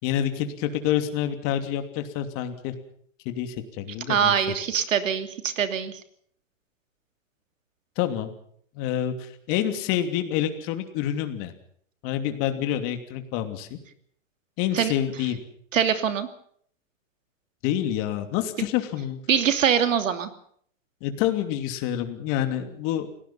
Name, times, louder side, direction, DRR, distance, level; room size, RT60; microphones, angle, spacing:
voice 1, 0.0-2.7 3.2-4.3 8.0-8.3 8.7-11.5 12.0-13.8 14.6-15.4 17.6-19.2 21.0-23.1, left 11 dB, 35° left, 7 dB, 3.0 m, -27 dB
voice 2, 4.1-5.9 14.7-14.9 15.7-16.3 19.3-20.3, right 8 dB, 85° right, 9 dB, 2.9 m, -23 dB
28.5 x 18.0 x 5.7 m, 0.62 s
hypercardioid pair, 145°, 38 cm